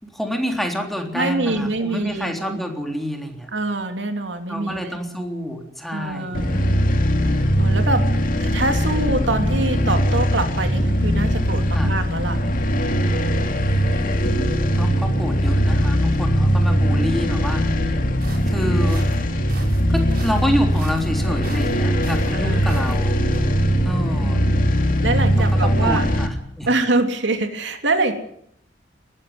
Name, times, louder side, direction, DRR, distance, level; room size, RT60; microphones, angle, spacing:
voice 1, 0.0-3.5 4.5-6.4 11.7-11.9 14.7-17.6 18.5-19.0 19.9-23.2 23.8-24.4 25.6-26.7, equal, ahead, 3 dB, 3.6 m, -27 dB
voice 2, 1.1-2.6 3.5-5.0 5.9-6.8 7.2-8.1 8.4-12.4 22.3-22.7 24.2-24.7 25.0-26.1 26.7-28.1, right 2 dB, 70° right, 6 dB, 3.1 m, -24 dB
sound 1, 6.3-26.3, equal, 50° left, 2.8 m, -20 dB
sound 2, 18.2-23.4, right 1 dB, 55° right, 5.5 m, -38 dB
20.5 x 15.5 x 9.7 m, 0.69 s
head